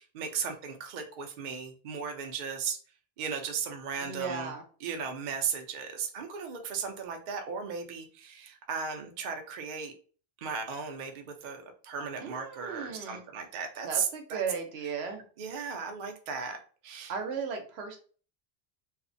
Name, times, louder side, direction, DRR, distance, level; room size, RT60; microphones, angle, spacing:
voice 1, 0.0-2.8 3.2-4.5 4.8-9.9 10.4-14.4 15.4-16.6 16.8-17.1, right 6 dB, 60° right, 5 dB, 0.6 m, -36 dB
voice 2, 4.0-4.6 12.2-13.2 13.8-15.2 17.1-18.0, right 5 dB, 85° right, 4 dB, 0.9 m, -36 dB
2.5 x 2.0 x 2.5 m, 0.40 s
omnidirectional pair, 1.0 m